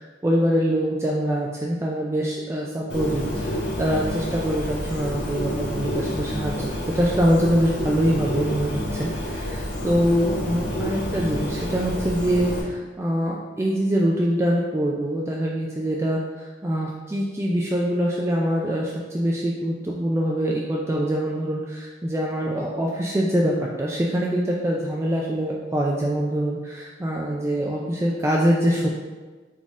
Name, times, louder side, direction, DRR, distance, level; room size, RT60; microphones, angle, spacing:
voice 1, 0.0-28.9, equal, 15° right, -3 dB, 0.3 m, -24 dB
Bird, 2.9-12.6, equal, 85° left, 1.4 m, -29 dB
4.1 x 3.6 x 3.5 m, 1.3 s
head